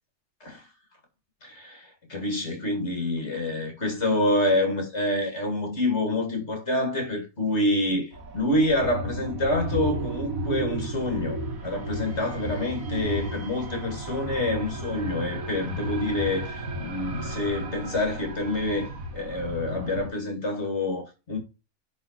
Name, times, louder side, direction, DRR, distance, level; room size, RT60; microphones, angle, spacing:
voice 1, 1.4-21.4, left 1 dB, 45° left, 2.7 m, -27 dB
sound 1, 8.1-20.1, right 1 dB, 60° right, 1.9 m, -33 dB
10.0 x 4.0 x 4.2 m
omnidirectional pair, 1.6 m